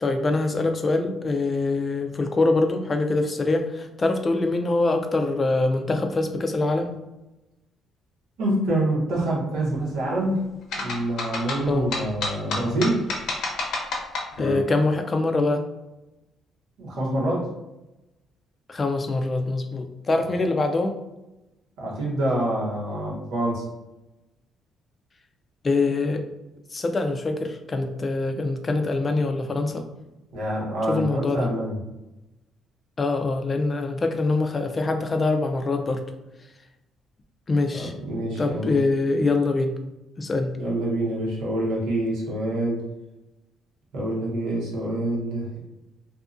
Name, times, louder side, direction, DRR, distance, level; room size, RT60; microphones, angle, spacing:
voice 1, 0.0-6.9 11.7-11.9 14.4-15.6 18.7-21.0 25.6-26.2 26.7-29.9 30.9-31.5 33.0-36.0 37.5-37.9 38.4-39.7 40.2-40.5, left 3 dB, 30° left, 6 dB, 0.3 m, -24 dB
voice 2, 8.4-10.5 10.7-13.0 16.8-17.5 21.8-23.6 30.3-31.8 37.7-38.8 40.6-42.8 43.9-45.6, right 1 dB, 85° right, -4 dB, 1.0 m, -26 dB
sound 1, 10.7-14.6, left 3 dB, 70° left, 0.6 m, -29 dB
2.6 x 2.3 x 2.5 m, 0.98 s
cardioid pair, 115°, 0 cm